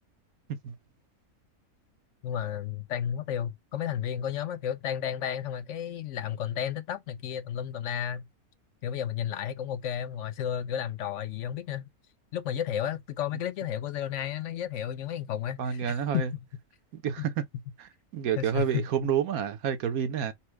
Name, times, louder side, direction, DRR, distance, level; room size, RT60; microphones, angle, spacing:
voice 1, 2.2-8.3 8.8-11.9 12.3-16.3 17.2-17.3 18.4-19.1, left 9 dB, 65° left, 0.9 m, -32 dB
voice 2, 15.6-16.3 16.9-17.5 17.8-20.3, right 8 dB, 80° right, 1.3 m, -29 dB
4.2 x 2.1 x 4.5 m
omnidirectional pair, 1.5 m